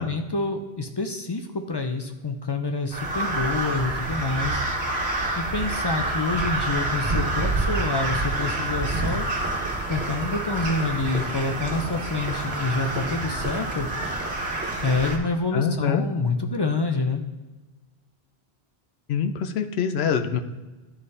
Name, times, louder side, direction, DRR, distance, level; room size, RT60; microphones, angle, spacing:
voice 1, 0.0-4.6 5.4-9.3 9.9-13.9 14.8-17.2, left 3 dB, 40° left, 5 dB, 0.3 m, -27 dB
Crow, 2.9-15.2, right 2 dB, 75° right, 1.5 m, -28 dB
sound 1, 4.1-11.1 11.7-14.2, right 1 dB, 55° right, 1.2 m, -42 dB
voice 2, 15.5-16.0 19.1-20.4, left 7 dB, 80° left, 8 dB, 0.8 m, -24 dB
11.5 x 4.1 x 3.2 m, 1.2 s
omnidirectional pair, 1.0 m